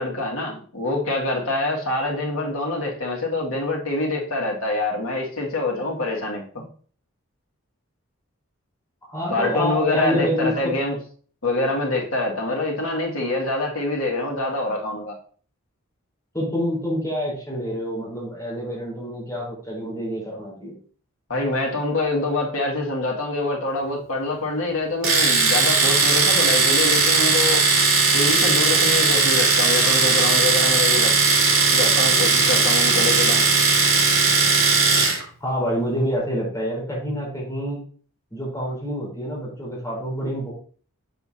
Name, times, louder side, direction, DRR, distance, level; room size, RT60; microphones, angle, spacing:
voice 1, 0.0-6.6 9.3-11.0 11.4-15.1 21.3-27.6 28.1-31.1 31.7-33.4, left 2 dB, 75° left, -1 dB, 2.0 m, -25 dB
voice 2, 9.0-10.7 12.5-12.6 16.3-20.7 35.4-37.8 38.3-40.5, equal, 15° left, -6 dB, 3.9 m, -27 dB
Domestic sounds home sounds, 25.0-35.2, right 4 dB, 75° right, 3.0 m, -18 dB
7.0 x 6.9 x 2.8 m, 0.44 s
head